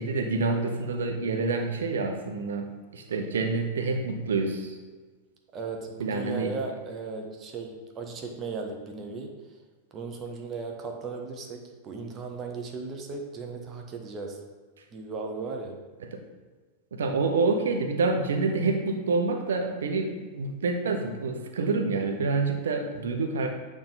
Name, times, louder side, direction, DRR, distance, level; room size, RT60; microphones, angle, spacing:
voice 1, 0.0-2.7 2.9-4.8 6.0-6.5 16.9-23.5, right 3 dB, 65° right, 4 dB, 0.8 m, -27 dB
voice 2, 5.5-9.3 9.9-14.4 14.9-15.8, right 4 dB, 30° right, 2 dB, 1.0 m, -36 dB
8.6 x 3.6 x 4.1 m, 1.3 s
figure-of-eight pair, 90°, 0 cm